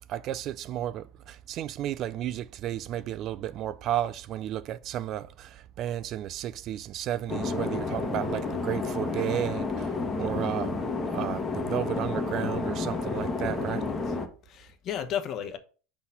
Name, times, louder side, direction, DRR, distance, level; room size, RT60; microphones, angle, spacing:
voice 1, 0.1-10.8 11.1-13.9, right 12 dB, 45° right, 0.4 m, -33 dB
sound 1, 7.3-14.3, left 3 dB, 20° left, 1.3 m, -31 dB
voice 2, 13.6-14.2 14.4-15.6, left 9 dB, 40° left, 1.1 m, -35 dB
5.8 x 4.1 x 5.6 m
supercardioid pair, 125°, 0 cm